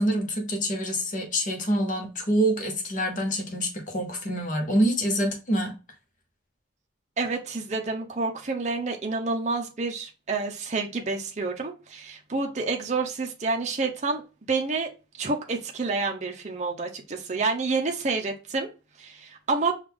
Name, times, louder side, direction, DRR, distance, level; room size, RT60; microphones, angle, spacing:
voice 1, 0.0-5.7, equal, 45° left, 1.1 m, -26 dB
voice 2, 7.2-14.2 14.5-14.9 15.2-18.7 19.0-19.7, right 3 dB, 40° right, 0.6 m, -28 dB
5.0 x 2.4 x 3.5 m
head